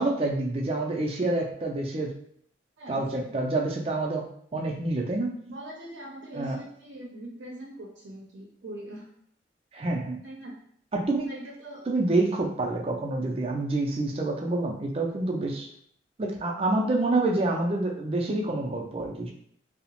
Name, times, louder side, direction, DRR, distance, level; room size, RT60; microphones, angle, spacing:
voice 1, 0.0-2.1 2.9-5.3 6.3-6.6 9.7-10.2 10.9-11.3 11.9-15.7 16.2-19.3, right 2 dB, 30° right, 1 dB, 0.4 m, -27 dB
voice 2, 2.8-3.4 5.5-9.1 10.2-10.5 11.3-11.9, right 1 dB, 85° right, -2 dB, 0.5 m, -42 dB
2.8 x 2.0 x 2.9 m, 0.64 s
head